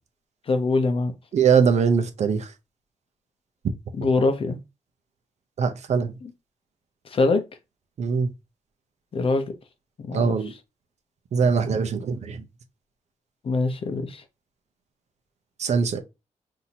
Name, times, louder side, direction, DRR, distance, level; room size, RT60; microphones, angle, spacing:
voice 1, 0.5-1.1 3.9-4.6 6.2-6.3 7.1-7.4 9.1-9.5 10.1-10.4 13.4-14.2, left 3 dB, 45° left, 0.6 m, -23 dB
voice 2, 1.3-2.5 5.6-6.1 8.0-8.3 10.1-10.5 11.3-12.4 15.6-16.0, right 6 dB, 60° right, 0.6 m, -22 dB
5.8 x 2.7 x 2.8 m
wide cardioid pair, 165°, 13 cm